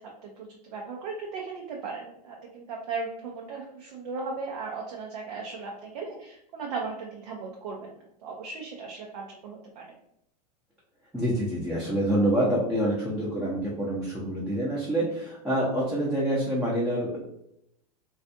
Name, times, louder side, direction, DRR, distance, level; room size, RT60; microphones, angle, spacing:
voice 1, 0.2-7.9 8.2-9.9, right 4 dB, 70° right, -1 dB, 0.6 m, -37 dB
voice 2, 11.1-17.2, right 1 dB, 5° right, -8 dB, 0.6 m, -26 dB
2.4 x 2.3 x 2.6 m, 0.78 s
hypercardioid pair, 110°, 21 cm